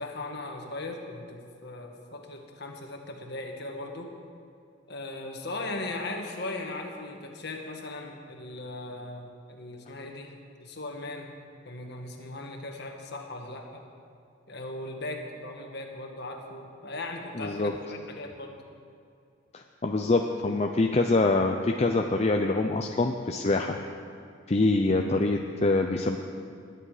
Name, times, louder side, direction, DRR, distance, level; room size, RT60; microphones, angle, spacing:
voice 1, 0.0-4.1 4.9-10.3 10.6-11.3 11.6-13.8 14.5-18.6, left 2 dB, 50° left, 2 dB, 1.6 m, -38 dB
voice 2, 17.4-17.7 19.5-23.8 24.5-26.2, left 2 dB, 30° left, 3 dB, 0.5 m, -25 dB
20.5 x 9.9 x 5.0 m, 2.5 s
head